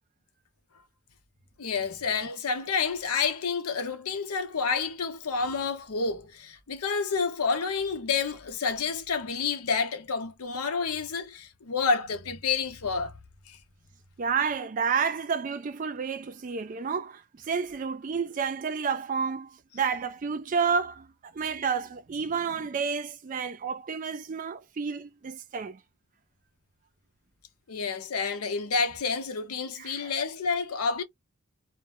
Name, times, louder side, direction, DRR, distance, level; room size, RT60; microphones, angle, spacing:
voice 1, 1.6-13.1 13.5-13.6 27.7-31.0, left 5 dB, 85° left, 0.6 m, -29 dB
voice 2, 14.2-21.1 21.3-25.8 29.8-30.1, right 6 dB, 35° right, 0.3 m, -30 dB
2.1 x 2.0 x 2.9 m
head